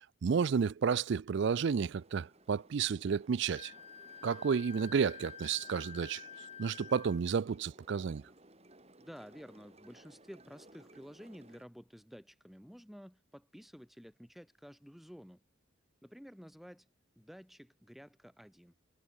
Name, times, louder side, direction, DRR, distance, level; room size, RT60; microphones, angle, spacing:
voice 1, 0.2-3.7 4.2-6.2 6.6-8.2, right 6 dB, 55° right, 0.4 m, -31 dB
sound 1, 1.9-11.7, right 1 dB, 30° right, 5.3 m, -60 dB
Wind instrument woodwind instrument, 3.5-7.2, left 7 dB, 30° left, 0.9 m, -50 dB
voice 2, 9.0-15.4 16.0-16.9 17.2-18.7, equal, ahead, 3.3 m, -52 dB
head